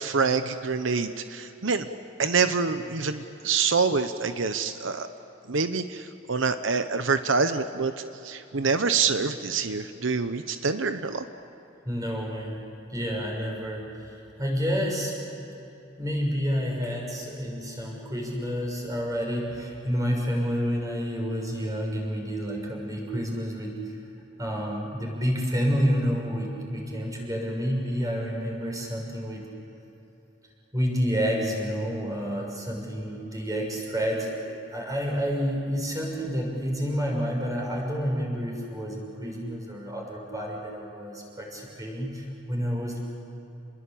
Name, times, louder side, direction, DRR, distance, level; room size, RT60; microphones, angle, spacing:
voice 1, 0.0-1.9 2.2-5.1 5.5-7.9 8.2-11.2, right 5 dB, 85° right, 9 dB, 0.9 m, -26 dB
voice 2, 11.8-12.6 12.9-15.2 15.5-15.6 16.0-23.8 24.4-29.4 30.7-43.0, equal, 20° right, -1 dB, 6.5 m, -29 dB
29.5 x 21.5 x 8.6 m, 2.9 s
head